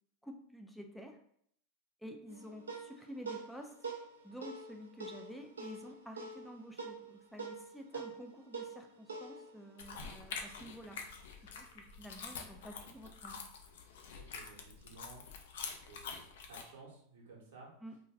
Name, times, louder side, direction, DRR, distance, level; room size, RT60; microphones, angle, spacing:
voice 1, 0.2-1.2 2.0-3.9 4.2-11.0 11.4-13.4 17.8-18.0, equal, ahead, 2 dB, 0.3 m, -50 dB
sound 1, 2.3-11.0, right 4 dB, 90° right, 0.4 m, -47 dB
sound 2, 9.8-16.6, left 5 dB, 70° left, 0.4 m, -46 dB
voice 2, 14.1-15.5 15.8-16.2 16.5-17.7, right 3 dB, 70° right, -3 dB, 0.8 m, -55 dB
2.2 x 2.2 x 3.2 m, 0.66 s
hypercardioid pair, 95°, 0 cm